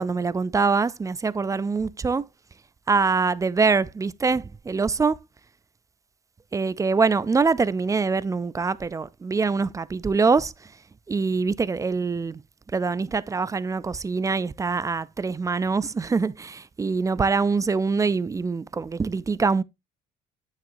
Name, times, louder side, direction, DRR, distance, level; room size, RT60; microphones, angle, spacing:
voice 1, 0.0-2.2 2.9-5.2 6.5-10.5 11.1-12.4 12.7-19.6, right 4 dB, 20° right, 0.4 m, -24 dB
9.0 x 7.2 x 2.6 m
cardioid pair, 110°, 17 cm